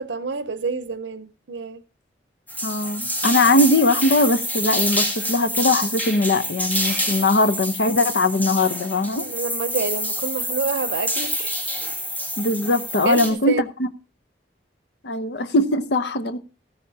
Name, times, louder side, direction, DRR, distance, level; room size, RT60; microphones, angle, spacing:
voice 1, 0.0-1.8 9.2-11.6 13.0-13.7, right 4 dB, 85° right, 0.6 m, -28 dB
sound 1, 2.5-13.3, equal, 10° left, 2.1 m, -27 dB
voice 2, 2.6-9.3 12.4-13.9 15.0-16.4, left 2 dB, 70° left, 0.8 m, -20 dB
15.0 x 13.0 x 2.7 m
head